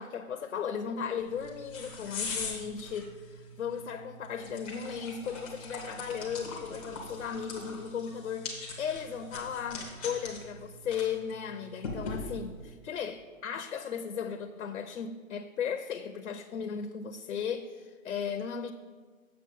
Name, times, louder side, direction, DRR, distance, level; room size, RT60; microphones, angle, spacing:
voice 1, 0.0-18.7, left 7 dB, 70° left, 7 dB, 0.7 m, -36 dB
sound 1, 1.2-12.7, left 3 dB, 10° left, 0.6 m, -42 dB
7.8 x 6.3 x 5.3 m, 1.5 s
hypercardioid pair, 160°, 42 cm